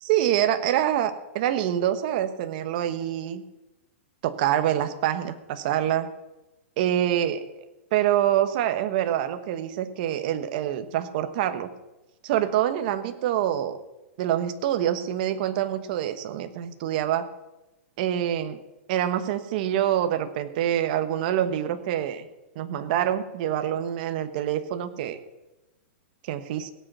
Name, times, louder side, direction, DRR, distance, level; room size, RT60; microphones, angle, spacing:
voice 1, 0.0-3.4 4.2-6.1 6.8-7.4 7.9-11.7 12.2-13.8 14.2-17.2 18.0-18.6 18.9-22.3 22.5-25.2 26.3-26.7, right 11 dB, 40° right, 9 dB, 1.1 m, -26 dB
17.0 x 8.0 x 6.1 m, 1.0 s
hypercardioid pair, 165°, 7 cm